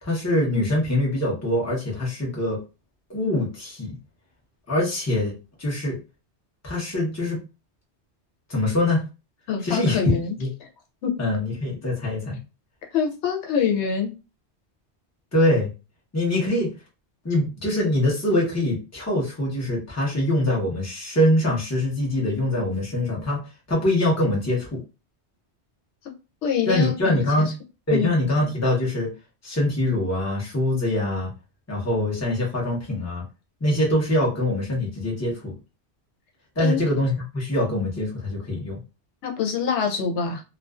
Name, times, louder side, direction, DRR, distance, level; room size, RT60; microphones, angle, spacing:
voice 1, 0.0-2.6 3.1-4.0 4.7-5.3 5.6-5.9 6.6-7.4 8.5-9.0 9.6-10.5 11.2-12.4 15.3-15.7 16.1-16.7 17.2-23.4 23.7-24.8 26.7-27.5 27.9-29.1 29.4-31.3 31.7-33.2 33.6-35.5 36.6-38.8, left 1 dB, 15° left, -3 dB, 0.8 m, -23 dB
voice 2, 9.5-10.4 11.0-11.1 12.9-14.1 26.4-27.2 27.9-28.1 36.6-36.8 39.2-40.4, left 7 dB, 90° left, 2 dB, 0.9 m, -25 dB
2.4 x 2.3 x 2.3 m, 0.30 s
omnidirectional pair, 1.1 m